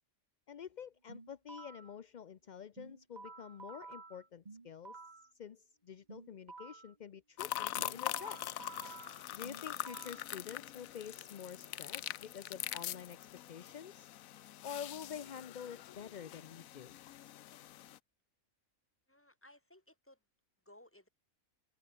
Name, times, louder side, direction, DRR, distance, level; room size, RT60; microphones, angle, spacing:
voice 1, 0.5-5.0 5.3-8.4 9.0-14.1 14.6-17.0, left 8 dB, 50° left, 0.5 m, -48 dB
sound 1, 1.1-1.9 2.8-5.3 6.1-6.9 7.8-10.3, right 4 dB, 30° right, 1.6 m, -52 dB
water boiling, 7.4-18.0, left 13 dB, 75° left, 1.1 m, -43 dB
voice 2, 19.1-20.2 20.7-21.1, left 1 dB, 10° left, 2.5 m, -60 dB
omnidirectional pair, 1.5 m